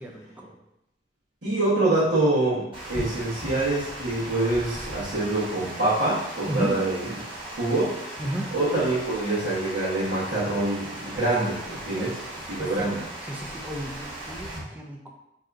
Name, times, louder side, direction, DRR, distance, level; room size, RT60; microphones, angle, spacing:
voice 1, 0.0-0.5 6.5-6.7 8.2-8.5 11.9-12.1 12.6-12.9 13.3-15.1, right 1 dB, 10° right, 0 dB, 0.4 m, -33 dB
voice 2, 1.4-7.2 7.5-7.9 8.5-12.2 12.5-13.0, right 2 dB, 85° right, -12 dB, 1.1 m, -25 dB
Water, 2.7-14.6, right 1 dB, 30° right, 1.2 m, -38 dB
2.7 x 2.5 x 3.3 m, 0.83 s
head